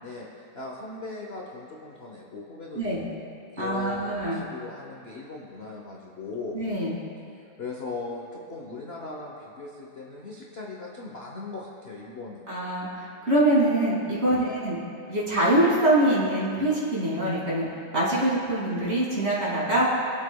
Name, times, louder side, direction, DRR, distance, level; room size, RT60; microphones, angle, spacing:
voice 1, 0.0-3.2 3.5-6.6 7.6-12.4 14.3-14.7, left 3 dB, 45° left, -2 dB, 0.8 m, -38 dB
voice 2, 3.6-4.4 6.5-6.9 12.5-14.7 15.1-17.7 17.9-19.9, right 1 dB, 30° right, -7 dB, 2.6 m, -24 dB
22.0 x 7.9 x 2.3 m, 2.5 s
omnidirectional pair, 2.3 m